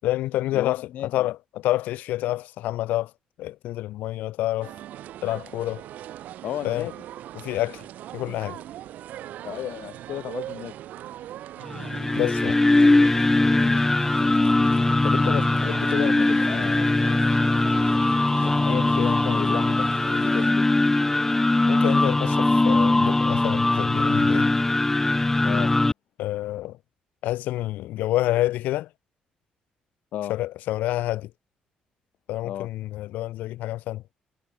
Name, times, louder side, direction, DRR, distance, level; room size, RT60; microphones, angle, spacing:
voice 1, 0.0-3.1 3.4-4.7 5.2-5.8 6.6-6.9 7.3-7.8 8.1-8.6 12.2-12.6 21.7-24.5 26.2-26.8 27.2-28.9 30.3-31.3 32.3-34.0, left 15 dB, 90° left, 7.0 m, -28 dB
voice 2, 0.5-1.2 6.4-6.9 9.4-10.7 13.6-13.8 15.0-16.9 18.3-20.7 25.4-25.7 30.1-30.3 32.4-32.7, left 12 dB, 70° left, 3.3 m, -33 dB
sound 1, 4.6-20.5, right 12 dB, 75° right, 7.4 m, -40 dB
sound 2, 11.7-25.9, left 2 dB, 15° left, 0.7 m, -21 dB
cardioid pair, 115°, 3 cm